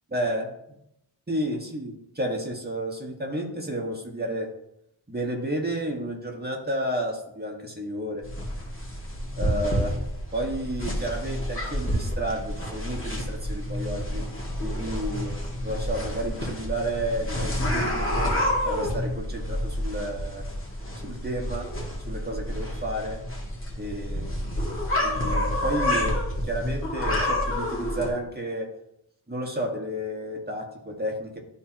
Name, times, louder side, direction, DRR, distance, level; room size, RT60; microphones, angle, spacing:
voice 1, 0.1-0.8 1.3-4.5 5.1-8.2 9.4-9.9 10.3-14.2 14.6-15.3 15.6-18.3 18.6-20.4 21.0-21.7 22.1-23.2 23.8-24.7 25.0-28.7 29.3-31.4, right 1 dB, 20° right, 1 dB, 1.7 m, -31 dB
sound 1, 8.2-28.1, left 1 dB, 30° left, 2.2 m, -29 dB
12.0 x 4.3 x 3.0 m, 0.79 s
wide cardioid pair, 65°, 43 cm